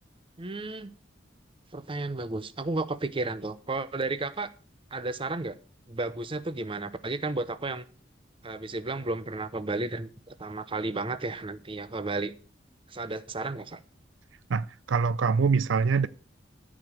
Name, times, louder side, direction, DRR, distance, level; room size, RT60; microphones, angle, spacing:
voice 1, 0.4-0.9 1.7-4.5 4.9-5.6 5.9-7.9 8.4-12.3 12.9-13.8, right 2 dB, 30° right, 0.8 m, -33 dB
voice 2, 14.5-16.1, right 5 dB, 80° right, 0.5 m, -24 dB
13.5 x 5.0 x 7.4 m
head